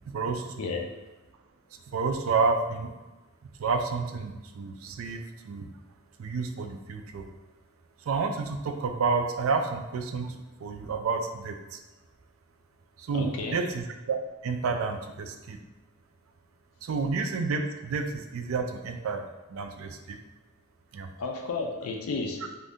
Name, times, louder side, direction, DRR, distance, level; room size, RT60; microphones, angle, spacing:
voice 1, 0.1-0.7 1.9-2.9 3.4-5.7 6.2-7.2 8.0-10.3 10.6-11.8 13.0-14.2 14.4-15.6 16.8-19.2 19.5-20.2 20.9-21.1, right 4 dB, 70° right, 6 dB, 0.4 m, -30 dB
voice 2, 13.1-13.6 21.2-22.6, left 3 dB, 80° left, 2 dB, 0.4 m, -32 dB
2.6 x 2.5 x 3.5 m, 1.1 s
head